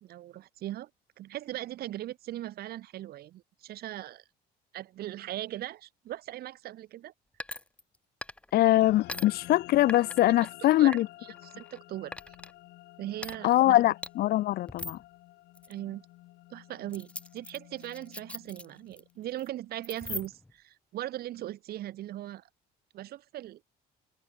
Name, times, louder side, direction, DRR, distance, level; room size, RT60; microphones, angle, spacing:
voice 1, 0.0-0.9 1.2-4.2 4.7-7.1 10.8-11.0 11.4-12.4 13.0-13.8 15.7-16.0 16.5-22.5 22.9-23.6, right 14 dB, 65° right, 1.4 m, -39 dB
sound 1, 7.4-8.0 8.2-8.6 9.1-9.3 9.9-10.5 10.9-11.8 12.1-12.5 13.2-13.4 14.0-14.1 14.7-15.0 15.5-15.7 16.9-19.0 19.3-19.5 19.8-20.5, left 2 dB, 5° left, 0.5 m, -41 dB
voice 2, 8.5-11.1 13.4-15.0, left 15 dB, 65° left, 0.6 m, -23 dB
sound 2, 8.7-19.4, left 18 dB, 85° left, 1.8 m, -51 dB
cardioid pair, 110°, 17 cm